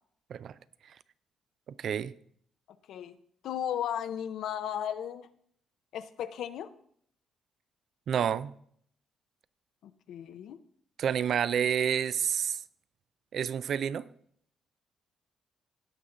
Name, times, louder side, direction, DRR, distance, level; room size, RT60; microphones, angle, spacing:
voice 1, 1.8-2.1 8.1-8.5 11.0-12.6 13.3-14.1, right 8 dB, 65° right, 0.4 m, -29 dB
voice 2, 3.4-5.3 5.9-6.7 9.8-10.6, left 9 dB, 75° left, 0.6 m, -35 dB
17.0 x 5.7 x 3.8 m
cardioid pair, 90°, 0 cm